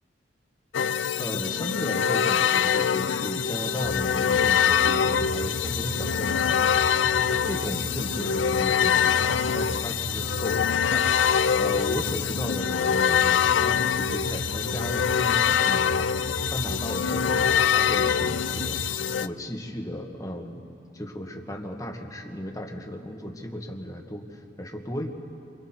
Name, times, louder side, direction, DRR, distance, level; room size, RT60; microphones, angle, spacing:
sound 1, 0.7-19.3, left 8 dB, 80° left, 0.5 m, -24 dB
voice 1, 1.2-6.7 7.4-20.6 20.9-25.1, equal, 20° left, 2 dB, 1.6 m, -35 dB
sound 2, 3.8-18.9, right 2 dB, 65° right, 0.6 m, -37 dB
28.5 x 25.5 x 4.5 m, 3.0 s
head